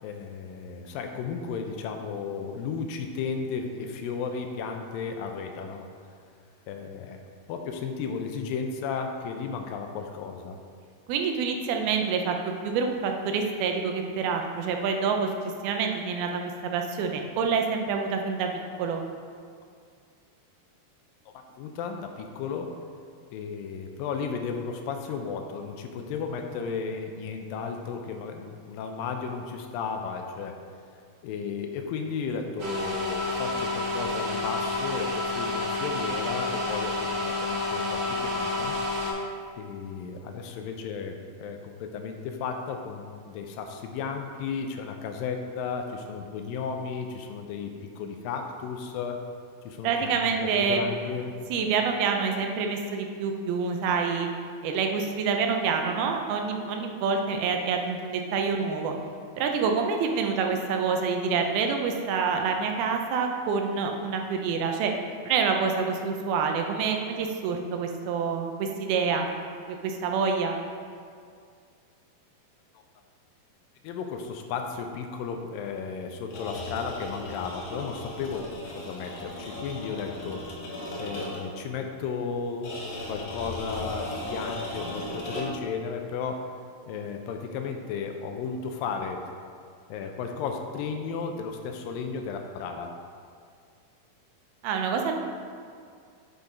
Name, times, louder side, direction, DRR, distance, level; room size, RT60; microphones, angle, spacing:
voice 1, 0.0-5.9 6.7-7.2 7.5-10.6 21.6-22.7 23.3-30.6 31.2-38.7 39.6-49.2 49.6-51.3 69.7-69.8 73.8-80.4 81.0-82.7 83.1-86.5 86.9-89.2 89.9-92.9, left 5 dB, 80° left, 4 dB, 2.3 m, -34 dB
voice 2, 11.1-12.4 12.6-15.3 15.6-19.0 49.8-50.8 51.5-54.3 54.6-58.9 59.4-64.9 65.2-69.3 69.8-70.6 94.6-95.2, right 5 dB, 85° right, 3 dB, 2.6 m, -27 dB
sound 1, 32.6-39.1, left 2 dB, 55° right, 3.4 m, -29 dB
sound 2, 76.2-81.6 82.6-85.7, left 1 dB, 60° left, 2.3 m, -37 dB
8.1 x 5.3 x 5.0 m, 2.2 s
omnidirectional pair, 4.3 m